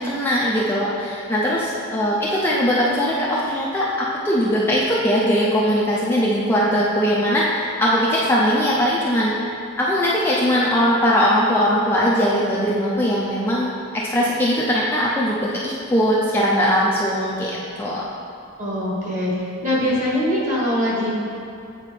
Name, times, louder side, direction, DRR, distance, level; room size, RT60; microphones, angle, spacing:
voice 1, 0.0-15.4 15.6-18.0, equal, 10° left, -6 dB, 0.5 m, -20 dB
voice 2, 18.6-19.3 19.6-21.1, left 1 dB, 35° right, -6 dB, 1.5 m, -22 dB
8.5 x 4.1 x 3.3 m, 2.5 s
head